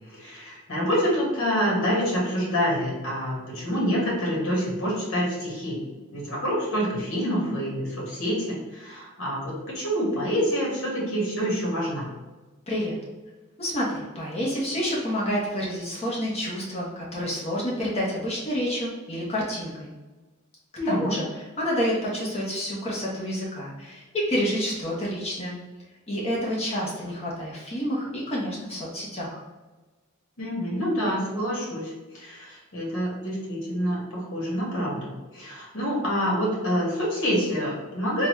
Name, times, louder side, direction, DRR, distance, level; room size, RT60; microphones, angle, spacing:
voice 1, 0.1-5.8 6.1-12.1 20.8-21.1 30.4-35.1 35.3-38.3, equal, 60° left, -4 dB, 1.5 m, -27 dB
voice 2, 13.6-19.9 20.9-25.6 26.1-29.4, equal, 30° left, -5 dB, 0.9 m, -29 dB
3.9 x 2.3 x 3.0 m, 1.2 s
head